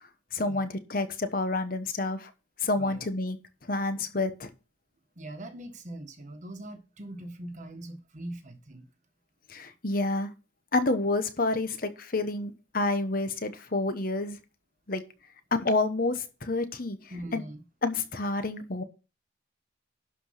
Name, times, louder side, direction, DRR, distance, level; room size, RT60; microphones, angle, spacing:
voice 1, 0.3-2.3 2.6-3.4 3.7-4.5 9.5-10.3 10.7-14.4 14.9-15.0 15.5-17.0 17.3-17.4 17.8-18.8, left 2 dB, 50° left, 1.1 m, -29 dB
voice 2, 5.2-8.8 17.1-17.6, right 1 dB, 40° right, 1.4 m, -41 dB
11.5 x 5.0 x 5.7 m
head